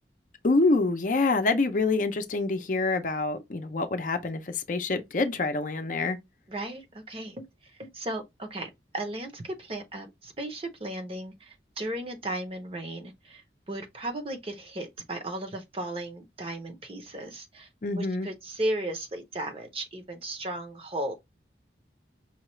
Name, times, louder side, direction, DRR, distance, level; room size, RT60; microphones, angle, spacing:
voice 1, 0.4-6.2 17.8-18.3, left 3 dB, 45° left, 0.5 m, -26 dB
voice 2, 6.5-7.5 7.7-13.4 13.7-17.7 18.0-21.1, right 1 dB, 30° right, 0.7 m, -35 dB
5.5 x 2.3 x 3.0 m
head